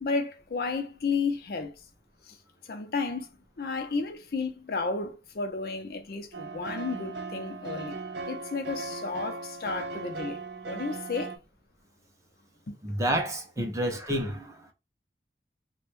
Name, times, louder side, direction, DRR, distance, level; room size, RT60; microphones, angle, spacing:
voice 1, 0.0-1.7 2.3-2.4 2.7-3.3 3.6-8.0 8.3-11.4 12.7-12.8, left 4 dB, 55° left, 0.5 m, -32 dB
sound 1, 6.3-11.4, right 3 dB, 75° right, 0.6 m, -38 dB
voice 2, 12.8-14.6, right 1 dB, 15° right, 0.5 m, -29 dB
3.4 x 2.2 x 3.0 m
head